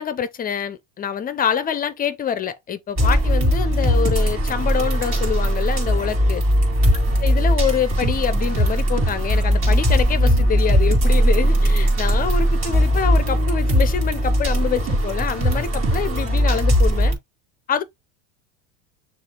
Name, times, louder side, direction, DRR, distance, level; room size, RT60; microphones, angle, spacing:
voice 1, 0.0-6.4 7.2-17.2 17.7-17.8, left 7 dB, 25° left, 0.5 m, -26 dB
sound 1, 3.0-17.1, equal, 35° right, 2.8 m, -19 dB
6.5 x 2.5 x 3.2 m
supercardioid pair, 130°, 37 cm